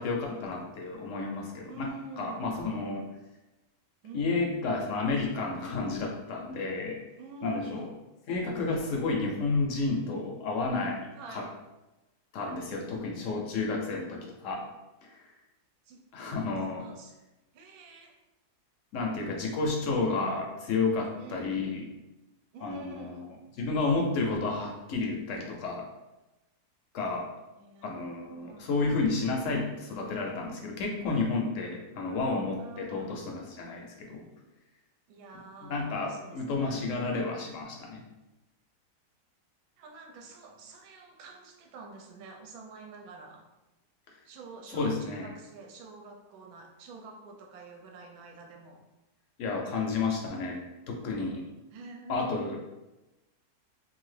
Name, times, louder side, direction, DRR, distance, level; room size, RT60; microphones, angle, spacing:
voice 1, 0.0-1.9 2.2-3.1 4.1-7.0 7.4-7.9 8.3-11.0 11.3-11.4 12.3-14.6 15.0-15.2 16.1-16.8 18.9-21.8 22.6-23.2 23.6-25.9 26.9-27.3 27.8-34.2 35.6-38.0 44.7-45.3 49.4-51.4 52.1-52.6, left 3 dB, 65° left, 0 dB, 0.8 m, -31 dB
voice 2, 1.7-2.7 4.0-4.4 7.2-7.9 11.2-11.5 12.9-13.0 15.8-17.2 17.5-18.2 18.9-19.3 20.9-21.6 22.5-23.4 27.6-28.9 31.9-33.2 35.1-36.9 39.8-43.5 44.2-48.8 51.7-52.6, right 3 dB, 70° right, 2 dB, 1.0 m, -47 dB
2.7 x 2.5 x 3.2 m, 1.0 s
omnidirectional pair, 1.7 m